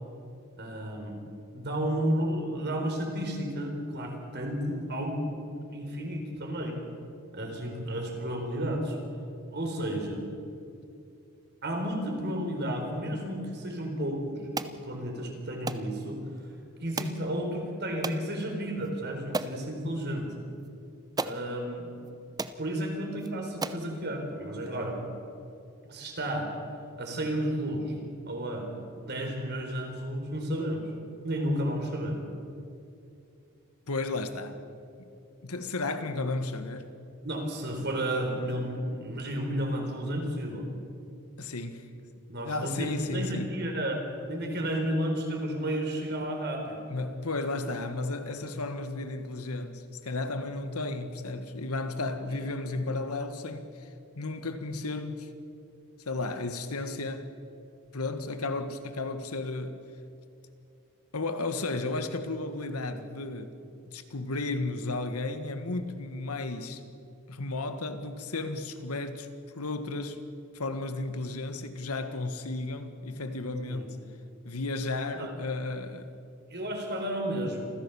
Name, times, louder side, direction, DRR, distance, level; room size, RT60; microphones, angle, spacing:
voice 1, 0.6-1.2 1.5-5.3 5.7-6.8 7.3-9.0 9.5-10.2 11.6-16.2 16.8-20.3 21.2-22.0 22.6-25.0 25.8-26.5 27.0-27.9 28.3-28.7 29.0-30.8 31.2-32.2 37.2-40.7 42.3-44.0 44.3-46.8 52.2-52.3 73.7-73.9 75.1-75.3 76.5-77.7, right 1 dB, 50° right, 4.1 m, -32 dB
sound 1, 14.6-14.8 15.7-15.9 17.0-17.2 18.0-18.2 18.8-18.9 19.3-19.6 20.6-20.7 21.2-21.4 22.1-22.2 22.4-22.6 23.2-23.3 23.6-23.9, right 3 dB, 15° right, 0.6 m, -33 dB
voice 2, 33.9-34.6 35.0-35.1 35.4-36.9 41.4-41.9 42.4-43.5 46.9-53.9 54.1-55.3 56.0-57.3 57.9-59.8 61.1-63.6 63.9-66.8 67.3-69.3 69.5-70.2 70.5-74.0 74.4-76.1, left 2 dB, 80° left, 1.6 m, -33 dB
27.0 x 15.5 x 7.1 m
head